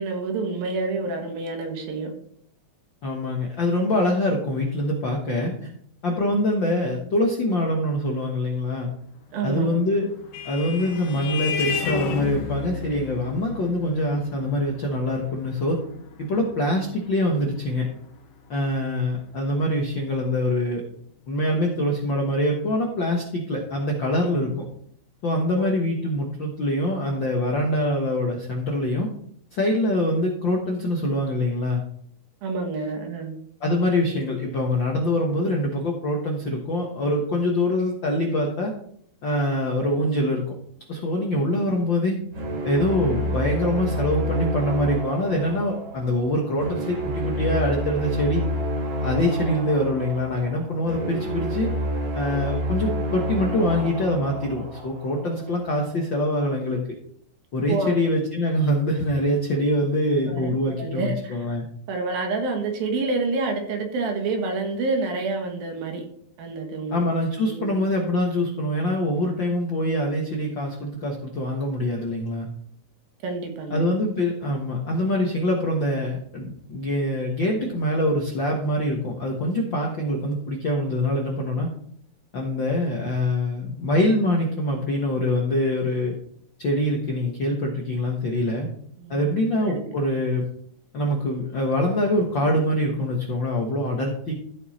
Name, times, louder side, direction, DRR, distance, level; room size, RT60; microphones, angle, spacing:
voice 1, 0.0-2.1 9.3-9.7 25.5-25.7 32.4-33.4 51.3-51.4 57.7-58.0 60.3-61.4 61.9-66.0 66.4-67.0 67.4-67.7 73.2-73.8 89.0-89.2 89.6-89.7, right 3 dB, 80° right, 3 dB, 3.5 m, -28 dB
voice 2, 3.0-5.7 6.0-8.9 9.4-10.1 10.4-15.8 16.2-17.9 18.5-20.8 21.3-24.6 25.2-29.1 29.5-31.8 33.6-38.7 39.2-40.5 40.9-42.2 42.6-48.4 49.0-51.7 52.1-56.8 57.5-61.6 66.9-72.5 73.7-81.7 82.3-86.1 86.6-88.7 89.1-90.5 90.9-94.3, left 1 dB, 65° left, 0 dB, 1.2 m, -24 dB
Vehicle horn car horn honking, 9.7-18.7, left 5 dB, 80° left, 3.0 m, -33 dB
sound 1, 42.3-55.4, equal, 45° right, 2.8 m, -29 dB
14.0 x 5.5 x 4.2 m, 0.65 s
omnidirectional pair, 4.1 m